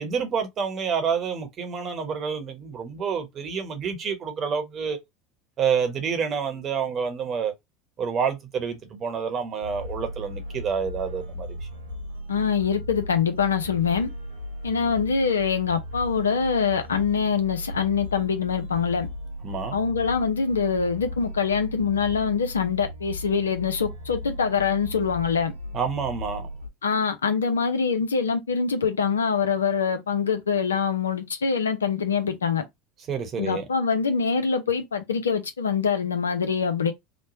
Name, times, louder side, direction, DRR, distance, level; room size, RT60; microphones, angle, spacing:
voice 1, 0.0-5.0 5.6-7.5 8.0-11.6 19.4-19.8 25.7-26.5 33.1-33.6, right 6 dB, 40° right, 0.9 m, -28 dB
sound 1, 9.6-26.7, left 1 dB, 85° right, 0.8 m, -36 dB
voice 2, 12.3-14.1 14.6-19.1 19.7-25.5 26.8-32.6 33.4-36.9, left 6 dB, 90° left, 0.5 m, -24 dB
3.1 x 2.1 x 2.6 m
hypercardioid pair, 85°, 0 cm